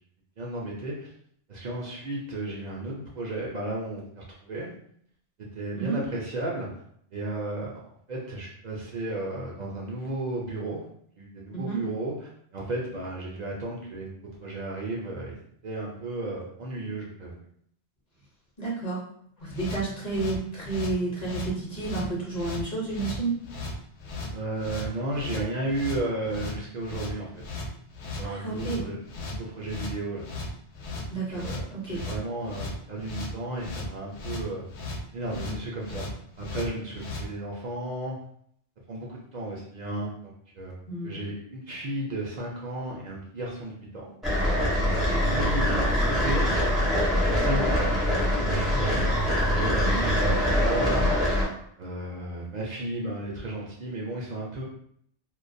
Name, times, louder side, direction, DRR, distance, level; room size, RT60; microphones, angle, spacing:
voice 1, 0.4-1.1 1.5-4.7 5.4-6.7 7.1-7.7 8.1-10.8 11.2-15.4 15.6-17.4 24.3-27.4 28.2-30.3 31.3-34.6 35.1-36.1 36.4-38.1 38.9-44.1 45.2-46.6 47.3-49.0 49.5-51.2 51.8-54.6, right 1 dB, 55° right, -3 dB, 0.5 m, -34 dB
voice 2, 18.6-19.0 19.4-23.3 28.2-28.8 31.1-32.0 40.9-41.1 44.9-45.3 49.8-50.0, right 3 dB, 45° left, -4 dB, 0.8 m, -31 dB
sound 1, 19.5-37.3, left 2 dB, 90° left, 0.9 m, -37 dB
sound 2, 44.2-51.4, equal, ahead, 0.5 m, -24 dB
2.2 x 2.2 x 2.5 m, 0.67 s
omnidirectional pair, 1.1 m